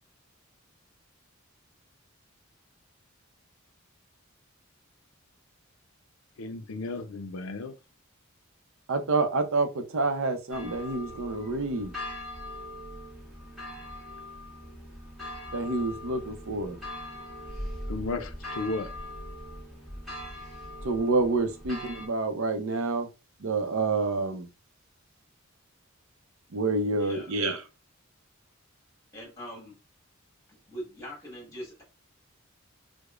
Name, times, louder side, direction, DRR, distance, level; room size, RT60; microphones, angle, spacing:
voice 1, 6.4-7.7 17.9-18.9, left 3 dB, 70° left, 0.5 m, -34 dB
voice 2, 8.9-11.9 15.5-16.8 20.8-23.1 23.4-24.5 26.5-27.6, right 3 dB, 70° right, 0.6 m, -28 dB
sound 1, 10.5-22.1, left 1 dB, ahead, 1.2 m, -41 dB
voice 3, 27.0-27.3 29.1-29.8 30.5-31.8, equal, 15° left, 1.5 m, -42 dB
4.8 x 2.1 x 2.4 m
head